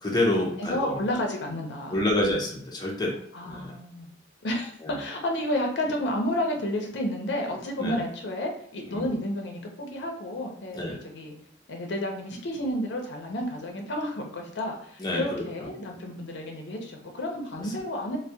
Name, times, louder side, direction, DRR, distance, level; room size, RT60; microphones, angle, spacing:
voice 1, 0.0-1.0 1.9-3.2 3.4-3.7 4.8-5.0 7.8-8.0 8.9-9.1 10.7-11.0 15.0-15.4 17.6-17.7, left 1 dB, 25° left, -2 dB, 0.5 m, -28 dB
voice 2, 0.6-2.0 3.3-4.1 4.4-11.4 11.7-18.2, left 1 dB, 75° left, 1 dB, 0.5 m, -31 dB
2.2 x 2.1 x 2.7 m, 0.68 s
head